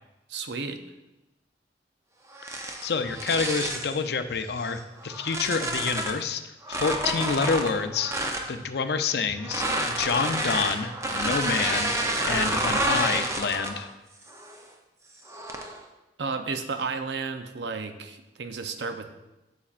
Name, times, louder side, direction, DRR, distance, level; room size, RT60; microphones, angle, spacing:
voice 1, 0.3-0.8 16.2-19.0, right 4 dB, 80° right, 7 dB, 0.6 m, -32 dB
sound 1, 2.3-4.0 4.6-6.2 6.6-8.5 9.4-13.9 14.3-14.6 15.3-15.8, right 1 dB, 15° right, 0.6 m, -29 dB
voice 2, 2.5-11.9 12.2-13.9, left 5 dB, 65° left, 9 dB, 0.5 m, -28 dB
8.6 x 6.9 x 2.5 m, 0.99 s
head